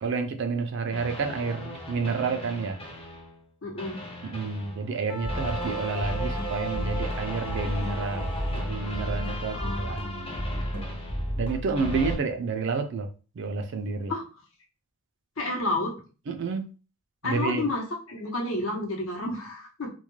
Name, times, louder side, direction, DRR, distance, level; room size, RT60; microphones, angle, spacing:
voice 1, 0.0-2.8 4.2-11.0 11.4-13.1 13.4-14.1 16.3-16.7 17.2-17.6, right 4 dB, 55° right, 0.3 m, -30 dB
sound 1, 0.9-3.4 3.8-12.2, equal, 25° left, 0.5 m, -33 dB
voice 2, 3.6-4.0 9.5-10.4 11.7-12.1 14.1-14.2 15.4-16.0 17.2-19.9, left 2 dB, 65° left, 0.7 m, -31 dB
Wind instrument woodwind instrument, 5.1-9.7, left 3 dB, 85° left, 0.4 m, -42 dB
2.2 x 2.2 x 3.0 m
head